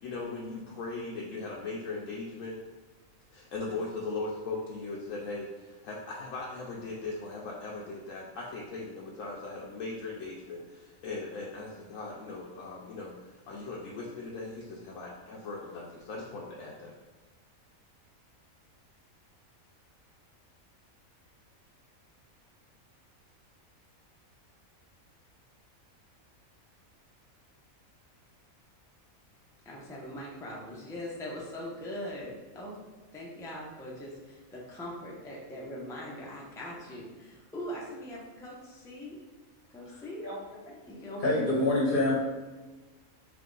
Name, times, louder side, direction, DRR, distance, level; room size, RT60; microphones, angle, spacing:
voice 1, 0.0-2.6 3.3-17.0, left 3 dB, 70° left, -3 dB, 0.9 m, -39 dB
voice 2, 29.6-32.8 33.1-39.1 39.7-40.3 40.9-41.6, equal, 5° left, -4 dB, 0.4 m, -41 dB
voice 3, 41.2-42.1, left 2 dB, 45° left, -4 dB, 0.9 m, -26 dB
3.4 x 3.1 x 3.8 m, 1.3 s
omnidirectional pair, 1.5 m